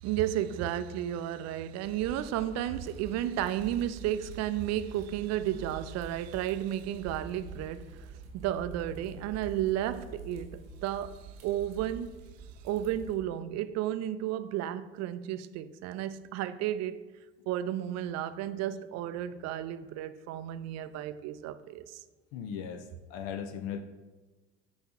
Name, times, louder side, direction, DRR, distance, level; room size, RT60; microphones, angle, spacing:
voice 1, 0.0-17.1 17.5-22.0, right 12 dB, 50° right, 0.4 m, -33 dB
sound 1, 1.8-13.2, right 4 dB, 90° right, 1.1 m, -46 dB
voice 2, 22.3-22.8 23.1-23.8, left 8 dB, 65° left, 0.6 m, -37 dB
8.3 x 2.8 x 4.4 m
hypercardioid pair, 65°, 34 cm